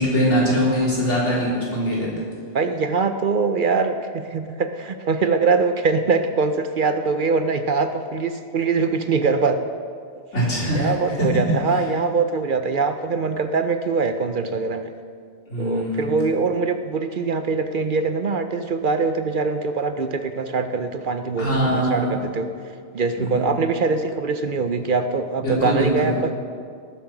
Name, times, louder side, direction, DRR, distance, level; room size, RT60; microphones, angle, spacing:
voice 1, 0.0-2.1 10.3-11.3 11.7-11.8 15.5-16.1 21.4-22.2 23.2-23.5 25.4-26.1, equal, 85° left, -6 dB, 4.1 m, -22 dB
voice 2, 2.5-9.6 10.8-14.9 15.6-22.5 22.9-26.3, right 4 dB, 55° right, 8 dB, 0.7 m, -23 dB
19.0 x 7.7 x 6.0 m, 2.2 s
omnidirectional pair, 1.2 m